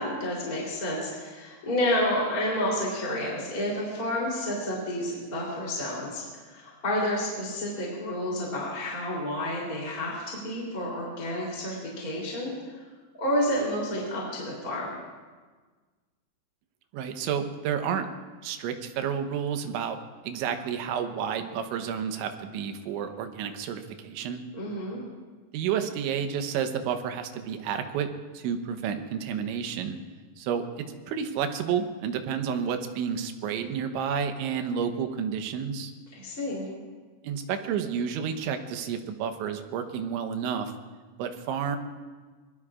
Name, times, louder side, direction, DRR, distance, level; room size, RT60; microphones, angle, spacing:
voice 1, 0.0-12.5 13.2-14.9 24.5-25.0 36.1-36.7, left 1 dB, 20° left, -5 dB, 3.2 m, -30 dB
voice 2, 16.9-18.1 18.4-20.0 20.2-24.4 25.5-28.1 28.3-30.0 30.4-35.9 37.2-40.7 41.2-41.8, right 7 dB, 85° right, 7 dB, 3.3 m, -30 dB
26.0 x 21.5 x 2.5 m, 1.4 s
omnidirectional pair, 5.4 m